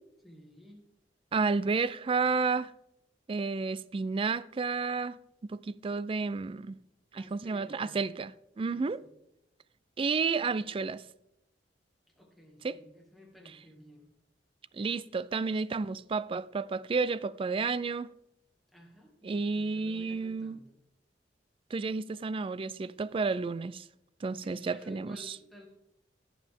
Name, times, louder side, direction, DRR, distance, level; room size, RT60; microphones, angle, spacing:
voice 1, 0.2-0.8 7.1-8.0 8.6-9.1 12.1-14.1 18.7-20.7 24.3-25.7, left 1 dB, ahead, 2.1 m, -54 dB
voice 2, 1.3-2.7 3.3-5.2 5.5-6.8 7.1-8.3 8.6-9.0 10.0-11.0 12.6-12.8 14.7-18.1 19.2-20.6 21.7-23.8 24.2-25.2, right 4 dB, 30° right, 0.3 m, -31 dB
17.0 x 7.2 x 3.6 m
head